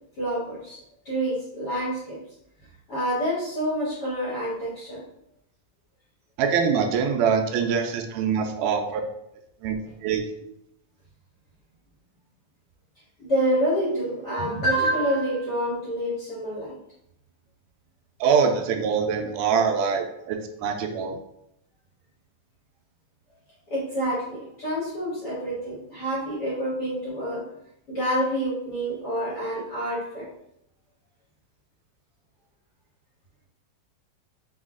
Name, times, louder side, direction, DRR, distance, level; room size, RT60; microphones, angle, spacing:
voice 1, 0.2-0.8 1.0-2.2 2.9-5.0 13.2-16.7 23.7-27.4 27.9-30.3, equal, 65° left, -8 dB, 1.0 m, -27 dB
voice 2, 6.4-9.0 9.6-9.8 10.0-10.2 18.2-21.2, right 6 dB, 80° right, 3 dB, 2.0 m, -24 dB
5.5 x 2.3 x 3.6 m, 0.79 s
omnidirectional pair, 3.9 m